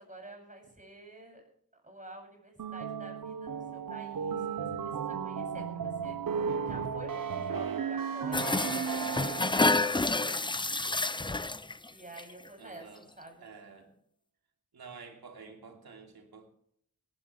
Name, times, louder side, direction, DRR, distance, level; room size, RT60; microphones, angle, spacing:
voice 1, 0.0-1.4 1.7-10.7 11.9-12.9 13.2-13.5, right 2 dB, 20° right, 2 dB, 7.7 m, -49 dB
sound 1, 2.6-9.9, right 6 dB, 65° right, 1.2 m, -35 dB
sound 2, 8.3-11.9 12.2-12.5 12.8-12.9, left 2 dB, 15° left, 0.6 m, -29 dB
voice 2, 12.6-13.0 13.4-13.9 14.7-16.5, right 5 dB, 85° right, 3 dB, 3.0 m, -50 dB
19.0 x 14.5 x 3.4 m, 0.67 s
wide cardioid pair, 70°, 36 cm